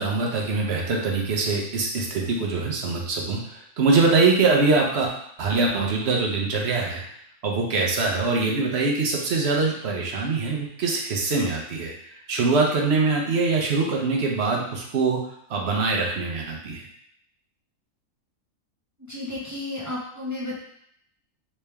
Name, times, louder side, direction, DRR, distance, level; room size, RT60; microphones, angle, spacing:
voice 1, 0.0-5.1 5.4-7.0 7.4-11.9 12.3-15.2 15.5-16.8, right 3 dB, 55° right, -1 dB, 0.9 m, -23 dB
voice 2, 19.0-20.6, left 2 dB, 30° right, -6 dB, 0.3 m, -32 dB
3.3 x 3.0 x 3.3 m, 0.69 s
omnidirectional pair, 1.5 m